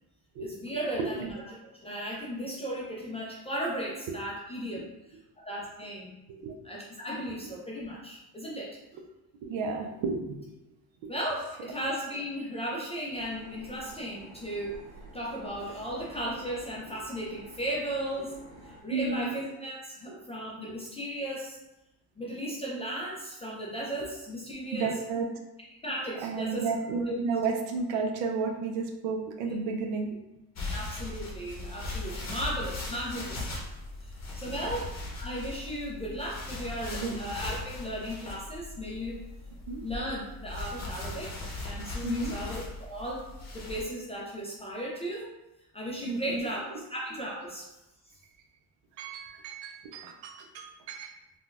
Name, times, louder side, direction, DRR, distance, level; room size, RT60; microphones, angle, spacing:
voice 1, 0.4-1.3 1.8-4.9 5.4-6.1 6.6-8.8 11.1-14.8 15.1-18.4 18.8-21.6 22.2-24.9 25.8-26.7 30.7-33.5 34.0-39.2 39.8-43.3 43.5-45.3 45.7-47.7, equal, 15° left, -5 dB, 0.3 m, -36 dB
voice 2, 1.0-1.3 6.4-6.5 9.4-10.4 18.9-19.3 20.1-20.2 24.7-25.3 26.2-30.2 34.6-34.7 36.9-37.2 39.7-39.8 42.0-42.3 46.0-46.4 49.0-51.1, right 4 dB, 70° right, 4 dB, 0.6 m, -32 dB
sound 1, 13.1-18.8, right 2 dB, 30° right, 1.3 m, -50 dB
sound 2, 30.6-43.8, left 2 dB, 35° left, 0.8 m, -39 dB
3.7 x 2.2 x 2.4 m, 0.94 s
cardioid pair, 120°, 47 cm